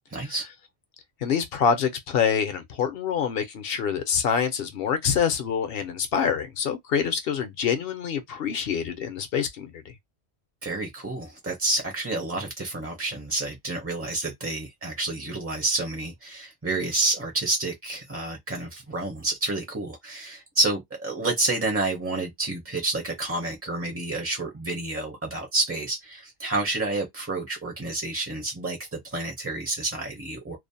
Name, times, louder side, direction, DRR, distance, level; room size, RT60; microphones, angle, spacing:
voice 1, 0.1-0.4 10.6-30.6, right 2 dB, 20° right, 0.4 m, -29 dB
voice 2, 1.2-9.9, left 7 dB, 65° left, 0.7 m, -26 dB
2.5 x 2.0 x 2.6 m
omnidirectional pair, 1.2 m